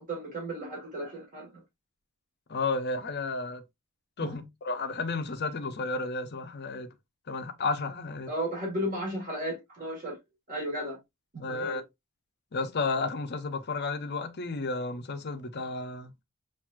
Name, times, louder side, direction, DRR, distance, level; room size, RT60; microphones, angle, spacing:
voice 1, 0.0-1.5 4.2-4.5 8.3-10.2 10.5-11.0 11.3-11.8, right 1 dB, 40° right, 1.8 m, -34 dB
voice 2, 2.5-3.6 4.2-6.9 7.3-8.3 11.4-11.8 12.5-16.1, left 3 dB, 50° left, 0.7 m, -32 dB
5.8 x 2.6 x 2.4 m
head